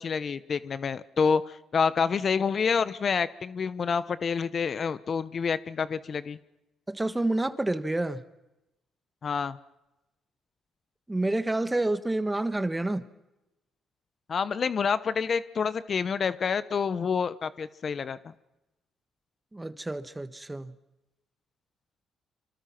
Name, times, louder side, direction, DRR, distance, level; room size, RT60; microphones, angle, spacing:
voice 1, 0.0-6.4 9.2-9.6 14.3-18.2, left 6 dB, 45° left, 15 dB, 0.9 m, -28 dB
voice 2, 6.9-8.2 11.1-13.0 19.5-20.7, right 2 dB, 15° right, 12 dB, 1.4 m, -28 dB
26.0 x 26.0 x 6.0 m, 0.96 s
cardioid pair, 90°, 0 cm